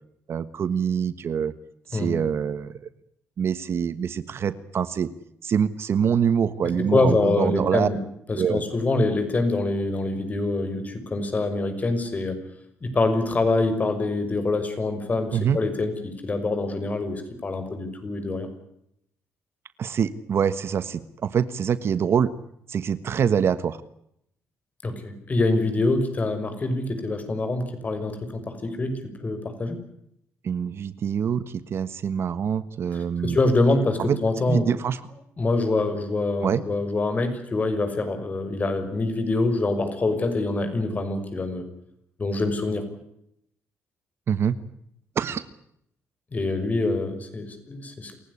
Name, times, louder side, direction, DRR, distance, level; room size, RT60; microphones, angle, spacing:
voice 1, 0.3-1.5 1.9-2.7 3.4-5.1 5.4-7.9 8.4-8.6 15.3-15.6 19.8-22.3 22.7-23.8 30.4-31.4 31.7-33.4 34.1-34.2 34.5-35.0 36.4-36.6 44.3-44.6 45.1-45.4, right 7 dB, 55° right, 14 dB, 1.4 m, -25 dB
voice 2, 6.8-8.0 8.3-12.4 12.8-18.5 24.8-29.8 32.9-34.7 35.4-41.6 42.2-42.8 46.3-48.1, left 2 dB, 30° left, 8 dB, 6.1 m, -25 dB
28.0 x 16.0 x 9.8 m, 0.76 s
cardioid pair, 105°, 5 cm